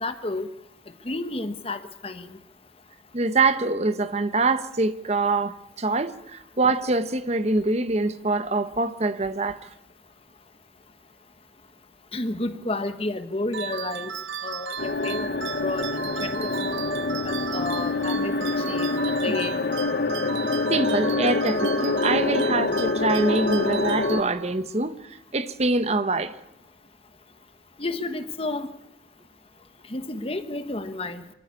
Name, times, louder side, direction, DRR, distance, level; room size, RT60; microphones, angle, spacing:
voice 1, 0.0-0.5 1.0-2.4 12.1-14.1 14.4-15.8 16.2-16.9 17.2-19.5 27.8-28.7 29.9-31.3, left 2 dB, 30° left, 1.3 m, -31 dB
voice 2, 3.1-9.7 20.7-26.3, right 3 dB, 35° right, 1.0 m, -24 dB
sound 1, 13.5-24.7, right 7 dB, 80° right, 1.2 m, -35 dB
sound 2, 14.8-24.2, left 3 dB, 50° left, 0.9 m, -26 dB
25.0 x 14.0 x 9.7 m
head